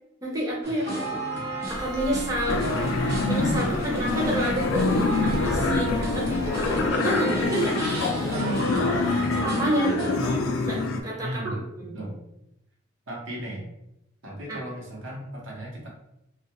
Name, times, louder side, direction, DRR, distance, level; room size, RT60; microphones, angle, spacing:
voice 1, 0.2-1.0 1.7-2.6 3.3-7.8 8.2-10.4 10.7-12.0 14.5-14.6, right 1 dB, 15° right, -4 dB, 0.4 m, -30 dB
sound 1, 0.6-10.4, right 1 dB, 55° right, 0.8 m, -32 dB
sound 2, 1.7-6.9, equal, 60° left, 0.7 m, -36 dB
sound 3, 2.5-11.0, left 3 dB, 85° left, 0.3 m, -26 dB
voice 2, 11.2-12.2 13.1-13.6 14.2-15.9, right 1 dB, 90° right, -3 dB, 0.8 m, -36 dB
2.2 x 2.2 x 2.8 m, 0.83 s
head